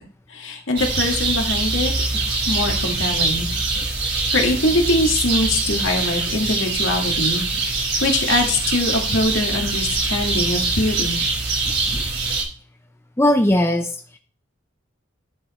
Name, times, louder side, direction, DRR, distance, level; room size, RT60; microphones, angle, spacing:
voice 1, 0.3-1.9 2.5-3.5 4.0-11.2, left 2 dB, 75° left, 2 dB, 1.9 m, -23 dB
sound 1, 0.8-12.4, right 3 dB, 55° right, 3.4 m, -23 dB
voice 2, 13.2-14.2, left 1 dB, 15° left, 4 dB, 0.7 m, -18 dB
10.5 x 5.1 x 4.3 m, 0.41 s
head